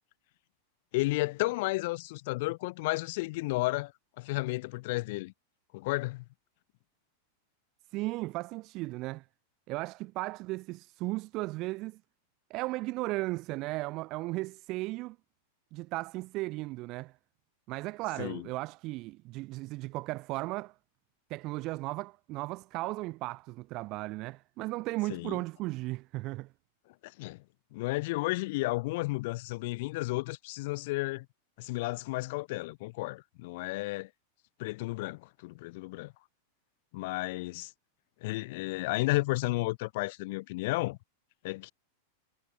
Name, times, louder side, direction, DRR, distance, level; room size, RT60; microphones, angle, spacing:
voice 1, 0.9-5.3 5.7-6.2 18.2-18.5 25.1-25.4 27.0-27.4 27.7-31.3 31.6-34.1 34.6-36.1 36.9-37.7 38.2-41.0 41.4-41.7, left 22 dB, 50° left, 0.9 m, -32 dB
voice 2, 7.9-9.2 9.7-12.0 12.5-15.2 15.7-17.1 17.7-20.7 21.3-26.5, right 21 dB, 40° right, 0.4 m, -36 dB
figure-of-eight pair, 90°, 0 cm